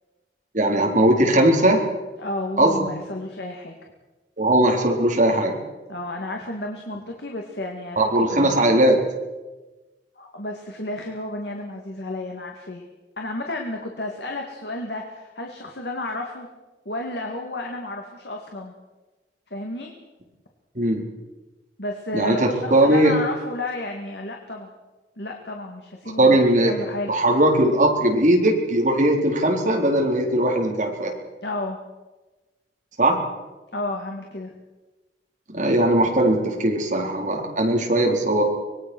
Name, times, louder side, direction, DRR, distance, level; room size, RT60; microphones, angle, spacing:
voice 1, 0.5-1.8 2.6-2.9 4.4-5.6 8.0-9.0 20.7-21.0 22.1-23.1 26.2-26.7 27.1-31.1 33.0-33.2 35.5-38.4, right 1 dB, 45° right, 0 dB, 4.2 m, -19 dB
voice 2, 2.2-3.7 5.9-8.6 10.2-12.8 13.2-16.5 16.9-18.7 19.5-19.9 21.8-24.7 25.2-26.4 26.7-27.1 31.4-31.8 33.7-34.5, left 1 dB, 65° left, 1 dB, 2.4 m, -32 dB
25.0 x 20.0 x 6.4 m, 1.2 s
head